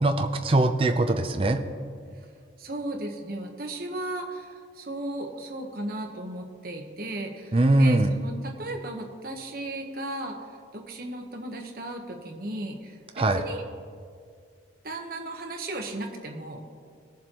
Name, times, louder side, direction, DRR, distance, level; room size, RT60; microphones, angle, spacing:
voice 1, 0.0-1.6 7.5-8.1 13.2-13.4, right 2 dB, 30° right, 5 dB, 0.5 m, -21 dB
voice 2, 2.6-10.4 10.7-13.6 14.8-16.6, right 1 dB, 50° right, 2 dB, 1.2 m, -35 dB
19.5 x 7.2 x 3.0 m, 2.2 s
head